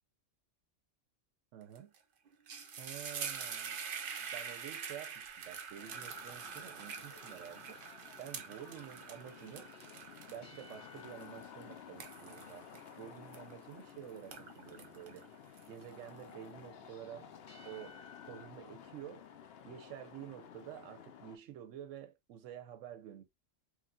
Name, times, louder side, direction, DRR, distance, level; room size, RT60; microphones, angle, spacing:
voice 1, 1.5-1.9 2.8-3.8 4.2-7.8 8.2-9.7 10.3-15.3 15.7-17.3 17.7-19.3 19.6-23.2, right 10 dB, 85° right, 0.9 m, -50 dB
sound 1, 1.8-2.0 2.3-13.8 14.2-16.1, right 6 dB, 55° right, 0.6 m, -45 dB
sound 2, 5.8-21.4, left 8 dB, 65° left, 0.7 m, -54 dB
sound 3, 9.7-13.2 16.7-18.5, left 4 dB, 80° left, 1.3 m, -59 dB
3.1 x 2.5 x 2.3 m
omnidirectional pair, 1.3 m